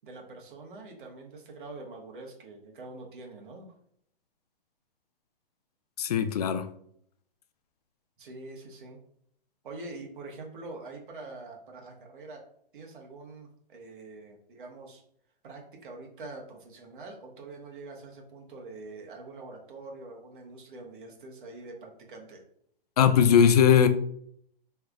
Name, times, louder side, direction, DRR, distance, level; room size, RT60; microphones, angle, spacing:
voice 1, 0.0-3.7 8.2-9.0 9.6-12.4 12.7-15.0 15.4-22.4, right 3 dB, 60° right, 0 dB, 1.3 m, -45 dB
voice 2, 6.0-6.7 23.0-23.9, left 8 dB, 45° left, 10 dB, 0.4 m, -20 dB
4.5 x 3.3 x 2.5 m, 0.68 s
hypercardioid pair, 135°, 29 cm